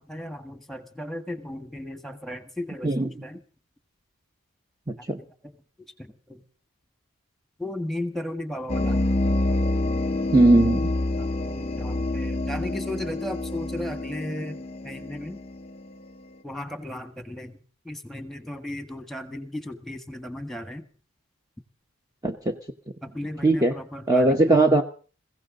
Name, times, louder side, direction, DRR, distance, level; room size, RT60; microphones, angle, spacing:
voice 1, 0.0-3.4 5.0-5.5 6.0-6.4 7.6-9.1 11.2-15.4 16.4-17.6 17.8-20.8 23.0-24.6, left 1 dB, ahead, 9 dB, 1.6 m, -35 dB
voice 2, 4.9-5.2 10.3-10.9 22.2-22.6 23.4-23.8 24.1-24.8, right 2 dB, 15° right, 5 dB, 1.0 m, -19 dB
sound 1, 8.7-16.1, left 2 dB, 25° left, 0.8 m, -27 dB
21.5 x 16.0 x 3.9 m, 0.39 s
head